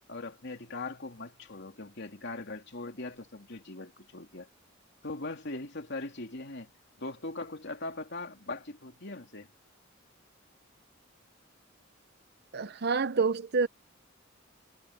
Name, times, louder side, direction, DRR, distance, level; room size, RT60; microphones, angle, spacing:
voice 1, 0.1-4.5 5.0-6.7 7.0-9.5, left 2 dB, 60° left, 3.0 m, -40 dB
voice 2, 12.5-13.7, right 4 dB, 55° right, 0.7 m, -27 dB
head